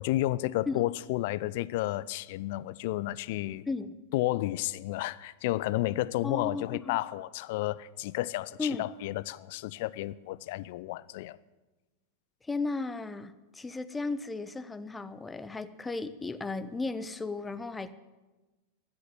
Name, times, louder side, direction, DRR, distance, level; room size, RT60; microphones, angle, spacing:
voice 1, 0.0-3.7 4.1-11.4, left 16 dB, 50° left, 0.4 m, -32 dB
voice 2, 6.2-7.0 8.6-8.8 12.4-17.9, left 3 dB, 10° left, 0.7 m, -35 dB
13.0 x 9.6 x 9.1 m
figure-of-eight pair, 90°, 0 cm